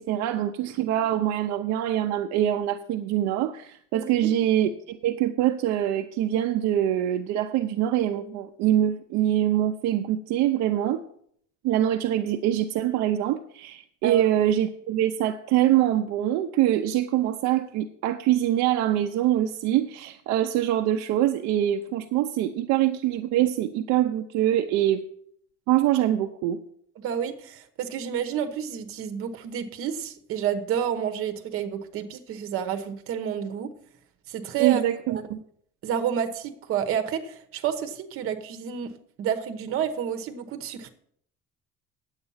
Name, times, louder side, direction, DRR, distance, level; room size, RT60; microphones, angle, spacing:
voice 1, 0.0-11.0 11.6-25.0 25.7-26.6 34.6-35.4, right 12 dB, 70° right, 5 dB, 0.6 m, -24 dB
voice 2, 3.9-4.3 14.0-14.3 27.0-33.7 34.3-34.8 35.1-35.3 35.8-38.9 39.2-40.9, right 8 dB, 50° right, 8 dB, 1.1 m, -30 dB
9.7 x 8.1 x 5.6 m, 0.65 s
cardioid pair, 180°, 29 cm